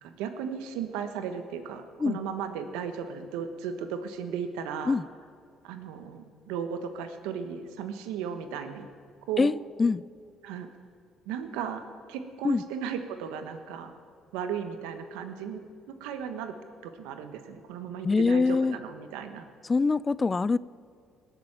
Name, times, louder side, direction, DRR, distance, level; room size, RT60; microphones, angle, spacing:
voice 1, 0.0-5.0 5.6-8.9 9.3-9.5 10.4-10.7 11.2-13.9 14.3-15.6 16.0-16.5 16.8-19.4, right 7 dB, 85° right, 9 dB, 1.2 m, -35 dB
voice 2, 9.4-10.0 12.4-12.6 18.0-18.8 19.7-20.6, left 4 dB, 30° left, 21 dB, 0.4 m, -24 dB
18.5 x 8.1 x 8.7 m, 2.2 s
supercardioid pair, 65°, 0 cm